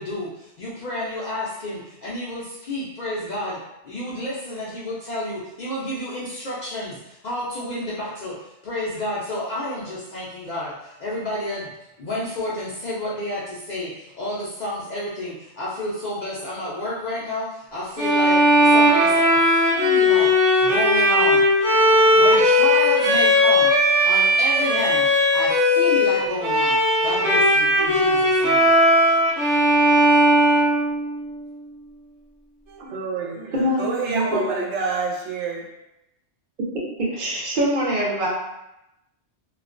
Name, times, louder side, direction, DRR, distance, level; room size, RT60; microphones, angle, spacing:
voice 1, 0.0-3.6 3.8-11.7 12.0-19.4 19.8-20.3 20.6-21.4 22.1-26.8 27.0-28.7, left 1 dB, 55° left, 0.5 m, -30 dB
Bowed string instrument, 18.0-31.4, equal, 25° right, 0.4 m, -17 dB
voice 2, 32.7-35.7, right 5 dB, 85° right, 0.9 m, -28 dB
voice 3, 33.5-34.6 37.0-38.3, equal, 50° right, 0.7 m, -24 dB
2.3 x 2.1 x 2.4 m
omnidirectional pair, 1.2 m